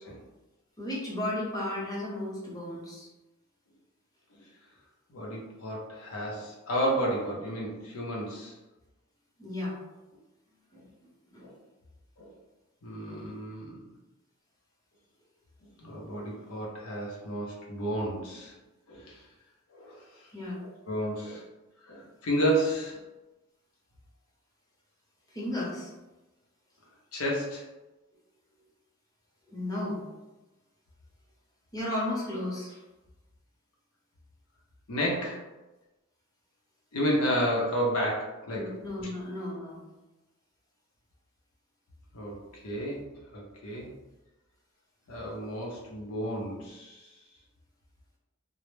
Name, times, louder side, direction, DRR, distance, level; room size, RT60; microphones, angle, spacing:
voice 1, 0.8-3.1 9.4-9.8 10.7-10.8 11.3-11.5 20.3-20.6 25.3-25.9 29.5-30.0 31.7-32.8 38.5-39.8, left 1 dB, 20° left, -5 dB, 0.6 m, -34 dB
voice 2, 5.1-8.5 11.4-11.5 12.2-12.3 12.8-13.8 15.8-18.5 18.9-19.2 19.7-20.3 20.9-21.4 21.9-23.0 27.1-27.6 34.9-35.4 36.9-38.7 42.1-42.4 42.6-43.1 43.3-43.9 45.1-47.0, equal, 80° left, -3 dB, 0.6 m, -31 dB
2.0 x 2.0 x 3.1 m, 1.1 s
head